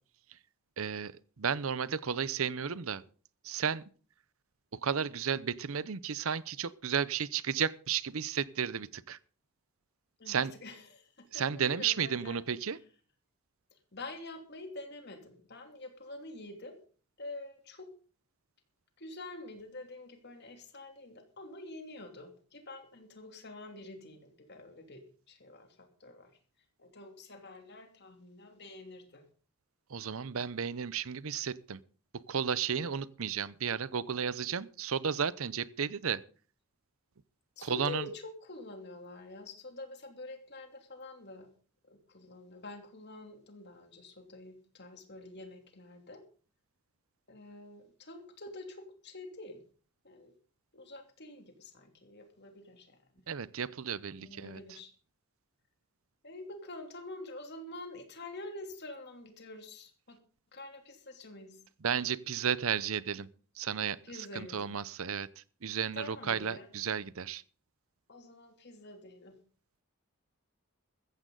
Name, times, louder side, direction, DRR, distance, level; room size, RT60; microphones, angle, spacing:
voice 1, 0.8-3.0 3.4-3.8 4.8-9.2 10.3-10.5 11.3-12.8 29.9-31.8 32.1-36.2 37.6-38.0 53.3-54.6 61.8-63.3 63.6-67.4, right 7 dB, 70° right, 0.7 m, -33 dB
voice 2, 10.2-12.5 13.7-16.8 17.2-17.9 19.0-26.3 26.8-29.2 37.6-41.5 41.9-46.2 47.3-49.6 50.0-50.3 50.7-53.2 54.2-54.9 56.2-60.2 60.5-61.6 64.0-64.7 65.9-66.7 68.1-69.4, left 2 dB, 50° left, 3.0 m, -47 dB
15.5 x 14.0 x 3.9 m
head